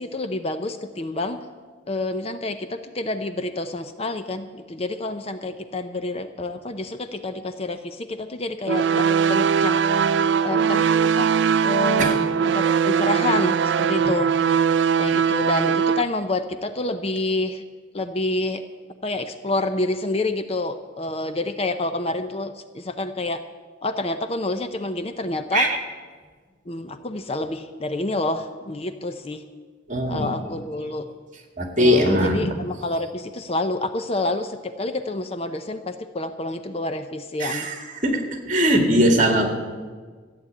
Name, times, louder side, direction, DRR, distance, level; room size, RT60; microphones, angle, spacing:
voice 1, 0.0-1.4 1.9-12.2 12.4-14.3 15.0-17.6 17.9-18.6 19.0-23.4 23.8-25.7 26.7-29.4 30.1-31.1 31.8-37.7, left 2 dB, 30° left, 9 dB, 0.6 m, -28 dB
sound 1, 8.7-16.0, right 7 dB, 60° right, 0.3 m, -20 dB
voice 2, 29.9-30.3 31.6-32.5 37.4-38.2 38.5-39.5, equal, 40° right, 4 dB, 2.1 m, -20 dB
14.0 x 9.4 x 8.5 m, 1.5 s
head